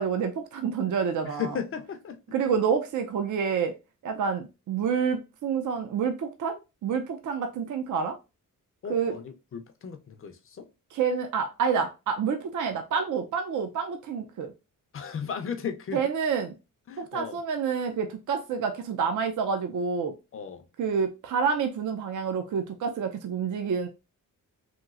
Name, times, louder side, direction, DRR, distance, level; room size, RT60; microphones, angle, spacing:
voice 1, 0.0-1.5 2.3-3.7 4.0-8.2 8.9-9.1 10.9-14.5 15.9-16.5 17.0-20.1 20.8-23.9, right 6 dB, 65° right, 0.5 m, -28 dB
voice 2, 1.2-2.2 8.8-10.7 14.9-16.0 16.9-17.4 20.3-20.7, left 7 dB, 40° left, 0.4 m, -35 dB
3.0 x 3.0 x 2.4 m
wide cardioid pair, 150°, 33 cm